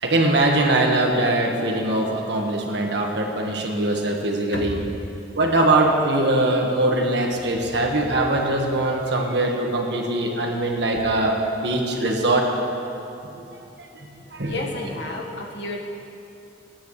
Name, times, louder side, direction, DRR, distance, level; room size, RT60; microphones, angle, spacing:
voice 1, 0.0-4.8 5.3-12.5 13.3-14.5, right 2 dB, 65° right, 0 dB, 1.7 m, -22 dB
voice 2, 4.5-4.9 14.5-15.8, left 1 dB, 70° left, -1 dB, 1.7 m, -31 dB
22.5 x 10.0 x 3.3 m, 2.8 s
head